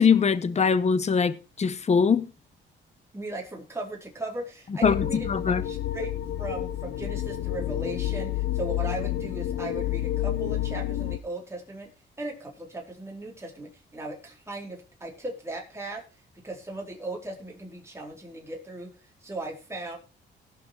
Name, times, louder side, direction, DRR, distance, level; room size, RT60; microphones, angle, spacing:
voice 1, 0.0-2.3 4.8-5.0 5.3-5.6, left 6 dB, 35° left, 1.0 m, -22 dB
voice 2, 3.1-5.3 5.6-6.1 6.4-11.9 12.2-16.0 16.3-20.0, right 2 dB, 15° right, 4.4 m, -37 dB
sound 1, 4.8-11.2, left 12 dB, 85° left, 1.1 m, -29 dB
18.0 x 6.2 x 4.7 m
cardioid pair, 90°, 20 cm